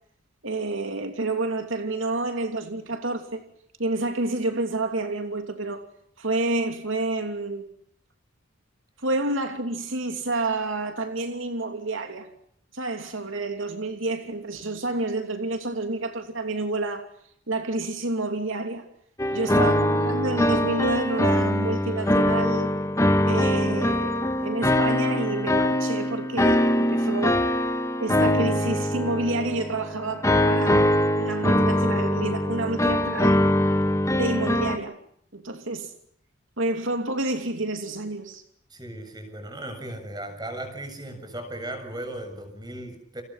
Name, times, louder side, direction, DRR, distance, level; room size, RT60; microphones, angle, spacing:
voice 1, 0.4-3.4 3.8-5.8 6.2-7.7 9.0-12.3 12.7-17.1 17.5-18.9 19.3-22.7 23.2-27.5 28.0-33.4 34.1-35.0 35.3-35.9 36.6-38.4, right 2 dB, 75° right, 3.0 m, -29 dB
sound 1, 19.2-34.8, left 1 dB, 15° left, 2.0 m, -23 dB
voice 2, 19.2-19.6 38.7-43.2, right 1 dB, 20° right, 7.3 m, -37 dB
30.0 x 28.5 x 5.9 m
head